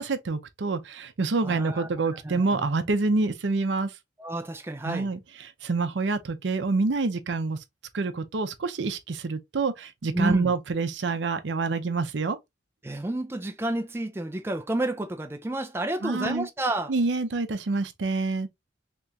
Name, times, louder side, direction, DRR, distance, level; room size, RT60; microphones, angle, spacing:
voice 1, 0.0-3.9 4.8-7.6 7.9-12.4 16.0-16.5 16.9-18.5, right 3 dB, 80° right, 0.6 m, -27 dB
voice 2, 1.4-2.7 4.2-5.1 10.1-10.5 12.8-16.9, right 1 dB, 15° right, 0.4 m, -30 dB
3.5 x 2.9 x 2.6 m
head